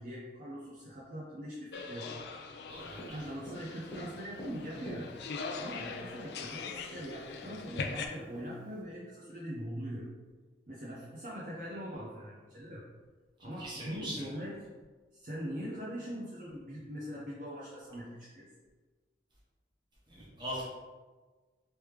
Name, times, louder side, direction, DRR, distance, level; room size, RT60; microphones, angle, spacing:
voice 1, 0.0-2.2 3.1-5.1 5.6-10.1 10.7-12.8 13.4-14.6 15.1-18.5, equal, 50° right, -7 dB, 0.6 m, -42 dB
sound 1, 1.7-8.1, left 4 dB, 70° left, 0.3 m, -42 dB
voice 2, 2.7-3.3 13.6-14.3 20.1-20.6, equal, 25° right, -7 dB, 1.1 m, -41 dB
Tap, 3.0-5.6 6.5-6.6 6.9-7.1 7.4-8.8, equal, 25° left, 1.1 m, -46 dB
3.2 x 3.1 x 3.2 m, 1.3 s
head